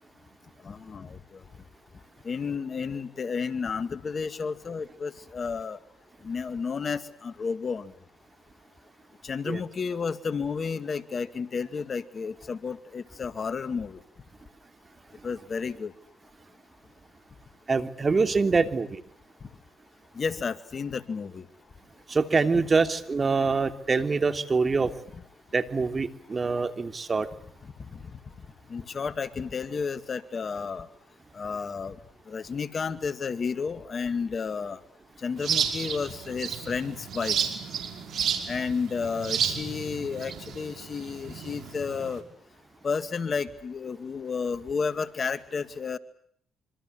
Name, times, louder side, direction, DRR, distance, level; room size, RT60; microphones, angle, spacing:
voice 1, 0.6-1.4 2.2-5.8 6.2-7.9 9.2-14.0 15.2-15.9 20.1-21.4 27.9-28.0 28.7-30.9 31.3-32.0 32.3-34.8 35.2-37.4 38.5-42.2 42.8-46.0, left 5 dB, 45° left, 12 dB, 2.3 m, -32 dB
voice 2, 17.7-19.0 22.1-24.9 25.5-27.3, right 4 dB, 35° right, 9 dB, 3.0 m, -25 dB
sound 1, 35.4-42.2, right 7 dB, 65° right, 5.2 m, -32 dB
26.5 x 26.0 x 8.0 m, 0.64 s
supercardioid pair, 60°, 0 cm